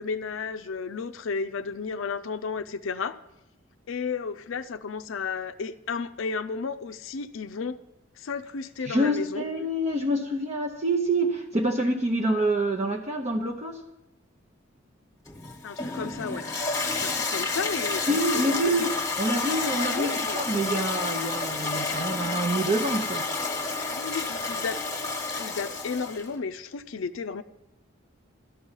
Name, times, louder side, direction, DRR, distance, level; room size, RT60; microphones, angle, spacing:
voice 1, 0.0-3.2 3.9-7.8 8.2-9.4 15.6-16.4 16.9-18.0 18.3-18.9 19.9-20.4 23.9-24.8 25.4-27.4, left 5 dB, 75° left, 10 dB, 0.5 m, -33 dB
voice 2, 8.9-13.8 18.1-18.9 19.2-23.3, right 1 dB, 35° right, 1 dB, 0.8 m, -26 dB
Toilet flush, 15.3-26.3, left 3 dB, 15° left, 1.3 m, -30 dB
13.0 x 5.4 x 8.9 m, 0.91 s
head